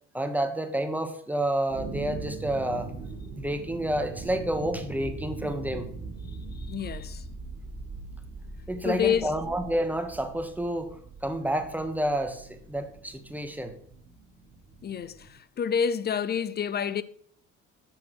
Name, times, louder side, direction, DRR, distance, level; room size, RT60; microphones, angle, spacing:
voice 1, 0.1-2.9 3.4-5.9 8.7-13.8, right 1 dB, 5° right, 1.1 m, -29 dB
sound 1, 1.7-15.3, right 3 dB, 35° right, 1.9 m, -41 dB
voice 2, 6.7-7.2 8.8-9.3 14.8-15.2 15.6-17.0, left 7 dB, 30° left, 0.5 m, -27 dB
6.1 x 6.0 x 4.7 m
hypercardioid pair, 65°, 35 cm